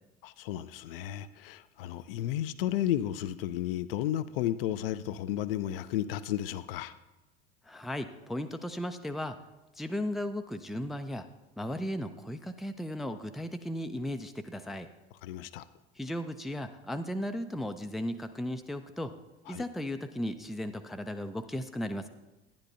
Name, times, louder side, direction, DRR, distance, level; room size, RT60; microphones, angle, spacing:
voice 1, 0.2-6.9 15.2-15.6 19.5-19.6, left 12 dB, 60° left, 0.5 m, -33 dB
voice 2, 7.7-9.4 9.8-11.3 11.6-14.9 16.0-19.1 19.5-22.1, left 1 dB, ahead, 0.4 m, -36 dB
10.5 x 10.5 x 2.6 m
figure-of-eight pair, 65°, 32 cm